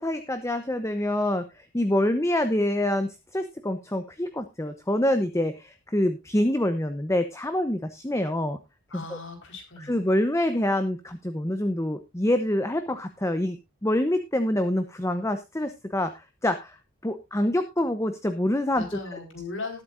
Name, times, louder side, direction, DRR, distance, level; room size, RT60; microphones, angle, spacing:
voice 1, 0.0-8.6 8.9-9.2 9.9-16.8 17.0-18.8 19.1-19.2, left 1 dB, 15° left, 9 dB, 0.9 m, -26 dB
voice 2, 8.9-10.0 18.7-19.8, left 3 dB, 60° left, 4 dB, 4.6 m, -37 dB
19.5 x 8.5 x 2.6 m, 0.25 s
head